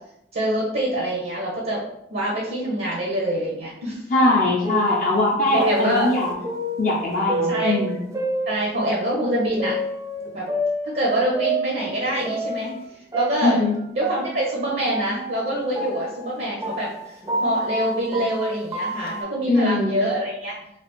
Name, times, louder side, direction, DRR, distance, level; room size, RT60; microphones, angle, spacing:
voice 1, 0.3-1.8 2.1-4.0 5.5-6.1 7.5-7.8 8.5-9.8 10.3-10.5 10.8-12.7 13.1-13.7 14.0-17.1 17.4-20.5, right 1 dB, 55° right, -3 dB, 0.7 m, -25 dB
voice 2, 4.1-6.4 6.8-8.0 13.4-13.7 19.5-20.0, left 2 dB, 45° left, -4 dB, 0.5 m, -21 dB
sound 1, 4.2-9.1 9.6-12.8 13.1-19.2, right 1 dB, 20° right, 0.4 m, -29 dB
3.3 x 2.4 x 2.9 m, 0.79 s
head